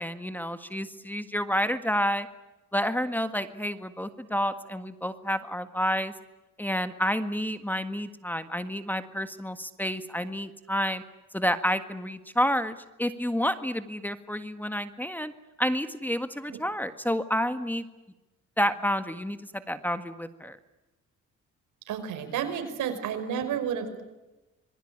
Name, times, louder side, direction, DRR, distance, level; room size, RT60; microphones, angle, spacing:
voice 1, 0.0-2.3 2.7-6.1 6.6-11.0 11.3-15.3 15.6-17.9 18.6-20.6, equal, 5° left, 10 dB, 1.7 m, -29 dB
voice 2, 21.9-24.0, right 8 dB, 80° right, 7 dB, 5.3 m, -31 dB
26.5 x 22.0 x 8.8 m, 1.1 s
cardioid pair, 90°, 30 cm